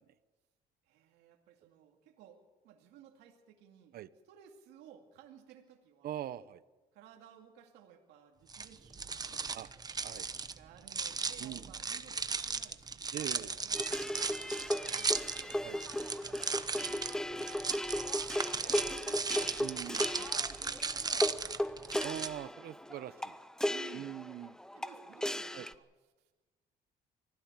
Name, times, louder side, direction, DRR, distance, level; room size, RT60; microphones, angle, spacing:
voice 1, 0.9-4.0 4.2-6.2 6.9-9.4 10.5-15.6 16.1-17.6 17.9-20.5 20.9-21.4 21.7-22.1 23.7-24.2 24.7-25.9, right 9 dB, 90° right, 2 dB, 2.5 m, -58 dB
voice 2, 6.0-6.6 9.5-9.7 10.0-10.3 11.4-11.7 13.1-13.5 15.6-15.8 18.6-18.8 19.6-20.0 22.0-23.4 23.9-24.5 25.5-25.7, right 12 dB, 65° right, 16 dB, 0.9 m, -42 dB
sound 1, 8.5-22.3, right 4 dB, 25° right, 1.0 m, -36 dB
sound 2, 13.7-25.7, left 1 dB, 5° left, 0.7 m, -36 dB
24.5 x 15.5 x 7.5 m, 1.2 s
cardioid pair, 110°, 17 cm